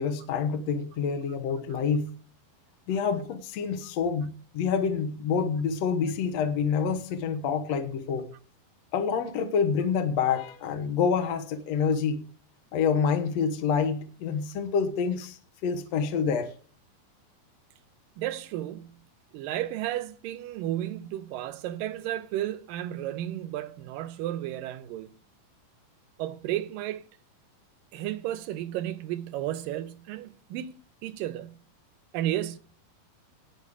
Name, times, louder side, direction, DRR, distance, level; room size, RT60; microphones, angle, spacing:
voice 1, 0.0-2.1 2.9-8.3 8.9-12.2 12.7-16.5, left 6 dB, 60° left, 2.0 m, -27 dB
voice 2, 18.2-19.0 19.3-25.1 26.2-27.1 27.9-31.6 32.1-32.6, right 13 dB, 80° right, 2.5 m, -33 dB
18.5 x 6.4 x 4.9 m
omnidirectional pair, 4.0 m